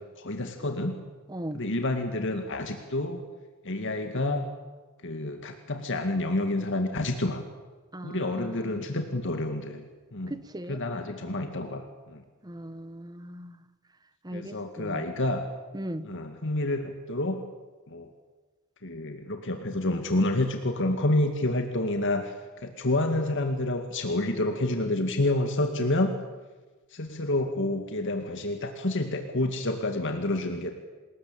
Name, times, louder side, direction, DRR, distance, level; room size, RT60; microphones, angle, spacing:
voice 1, 0.2-1.0 1.5-3.2 3.6-4.5 5.0-7.4 8.0-10.3 10.7-12.2 14.3-15.5 16.0-17.4 17.9-18.1 18.8-26.1 26.9-30.7, left 2 dB, 55° left, 5 dB, 2.2 m, -29 dB
voice 2, 1.3-1.6 7.9-8.9 10.3-10.8 12.4-13.6 14.2-15.1 15.7-16.1, right 1 dB, 20° right, 12 dB, 1.3 m, -38 dB
28.0 x 20.5 x 8.7 m, 1.3 s
head